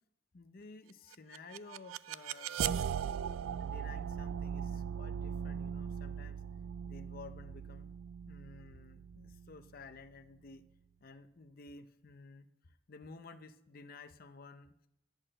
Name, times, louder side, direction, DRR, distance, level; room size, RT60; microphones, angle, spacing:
voice 1, 0.3-3.1 3.6-6.4 6.8-7.9 8.3-10.6 11.0-14.7, left 4 dB, 45° left, 8 dB, 0.6 m, -53 dB
sound 1, 1.1-10.1, right 8 dB, 80° right, 0.3 m, -39 dB
10.5 x 6.6 x 7.5 m, 0.78 s
head